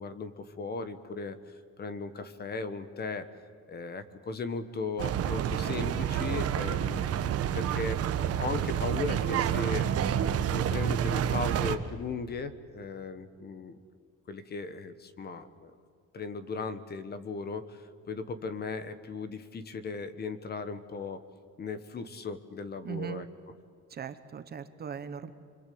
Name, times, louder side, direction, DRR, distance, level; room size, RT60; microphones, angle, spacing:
voice 1, 0.0-3.3 3.7-7.0 7.5-8.0 8.3-10.1 10.4-13.8 14.3-15.7 16.1-21.2 21.6-23.3, left 4 dB, 30° left, 11 dB, 1.3 m, -37 dB
sound 1, 5.0-11.8, right 9 dB, 50° right, 1.2 m, -29 dB
voice 2, 22.8-23.3 23.9-25.3, right 7 dB, 30° right, 10 dB, 1.0 m, -39 dB
25.5 x 25.0 x 8.6 m, 2.2 s
cardioid pair, 175°, 31 cm